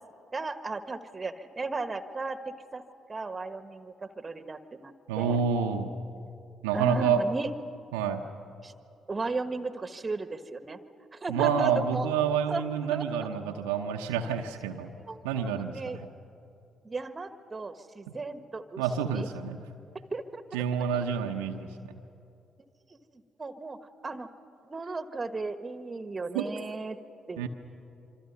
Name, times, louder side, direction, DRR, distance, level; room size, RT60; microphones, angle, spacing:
voice 1, 0.3-2.8 3.1-5.4 6.7-7.5 8.6-8.7 9.1-10.8 11.1-12.1 12.5-12.6 12.9-13.3 14.2-14.3 15.1-15.2 15.6-16.0 16.8-18.8 19.1-19.3 20.1-20.6 23.1-24.3 24.7-27.0 27.3-27.5, right 3 dB, 30° right, 11 dB, 1.4 m, -35 dB
voice 2, 5.1-5.9 6.6-7.2 7.9-8.2 11.3-14.9 15.2-15.8 18.8-19.6 20.5-21.6 26.3-26.5 27.4-27.5, right 7 dB, 75° right, 3 dB, 0.9 m, -28 dB
26.5 x 25.0 x 5.5 m, 2.8 s
figure-of-eight pair, 45°, 0 cm